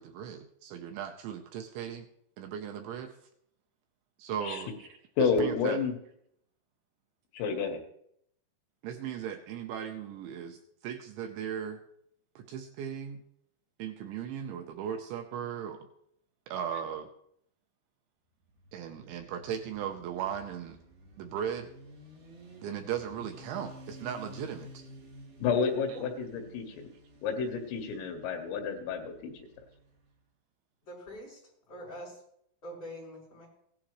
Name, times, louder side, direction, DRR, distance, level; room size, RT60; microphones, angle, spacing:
voice 1, 0.0-2.1 2.4-3.1 4.2-5.8 8.8-11.8 12.4-13.2 13.8-15.9 16.5-17.1 18.7-20.8 21.2-21.7 22.6-24.9 25.9-26.0, right 8 dB, 85° right, 5 dB, 2.8 m, -37 dB
voice 2, 5.2-5.9 7.3-7.8 25.4-26.9 27.2-29.5, left 5 dB, 85° left, 5 dB, 4.0 m, -30 dB
Motorcycle, 18.4-30.1, equal, 45° right, 2.6 m, -52 dB
voice 3, 30.8-31.4 31.7-32.2 32.6-33.5, equal, 25° left, -6 dB, 6.5 m, -44 dB
16.5 x 11.5 x 3.1 m, 0.71 s
omnidirectional pair, 5.7 m